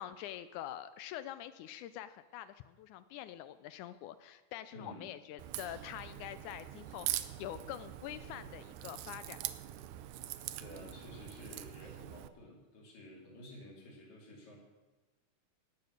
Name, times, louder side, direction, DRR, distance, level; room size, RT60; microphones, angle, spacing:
voice 1, 0.0-7.1 7.4-9.4, left 12 dB, 80° left, 13 dB, 1.9 m, -45 dB
voice 2, 4.7-5.1 10.6-14.6, left 1 dB, 60° left, -2 dB, 4.4 m, -51 dB
Crack, 5.4-12.3, right 13 dB, 75° right, 1.9 m, -43 dB
19.0 x 6.9 x 6.6 m, 1.2 s
omnidirectional pair, 3.7 m